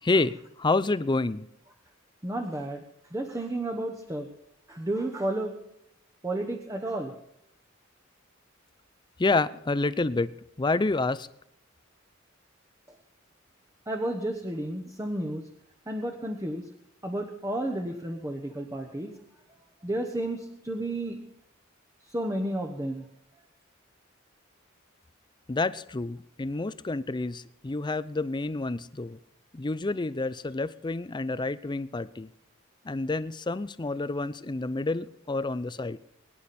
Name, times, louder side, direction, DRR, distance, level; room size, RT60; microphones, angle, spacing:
voice 1, 0.0-1.5 9.2-10.3 10.6-11.3 25.5-29.2 29.5-32.3 32.8-36.1, left 3 dB, 20° left, 15 dB, 0.5 m, -28 dB
voice 2, 2.2-2.8 3.1-4.3 4.7-5.5 6.2-7.1 13.9-15.4 15.9-16.7 17.0-19.1 19.8-21.2 22.1-23.0, right 1 dB, 15° right, 2 dB, 1.1 m, -32 dB
23.0 x 10.0 x 4.3 m, 0.77 s
head